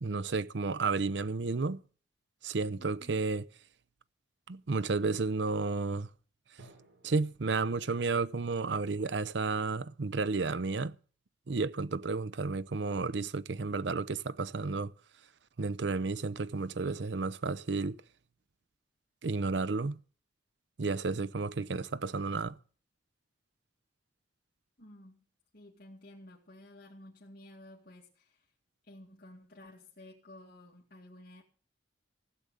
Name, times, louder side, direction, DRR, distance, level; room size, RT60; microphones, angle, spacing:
voice 1, 0.0-1.8 2.4-3.5 4.5-6.1 7.0-10.9 11.5-14.9 15.6-18.0 19.2-20.0 20.8-22.6, right 4 dB, 65° right, 0.6 m, -32 dB
voice 2, 2.8-3.2 24.8-25.3 25.5-28.5 28.9-31.4, left 1 dB, 50° left, 2.2 m, -53 dB
Drum, 6.6-8.5, right 2 dB, 85° right, 3.9 m, -60 dB
16.0 x 7.7 x 6.8 m
head